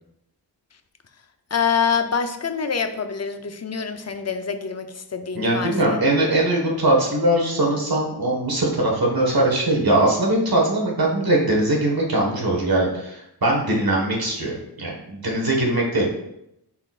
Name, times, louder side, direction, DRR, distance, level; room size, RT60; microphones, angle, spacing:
voice 1, 1.5-6.0, left 6 dB, 40° left, 8 dB, 0.6 m, -25 dB
voice 2, 5.3-16.1, right 1 dB, 60° right, -2 dB, 1.7 m, -21 dB
10.5 x 4.3 x 2.5 m, 0.82 s
wide cardioid pair, 75°, 42 cm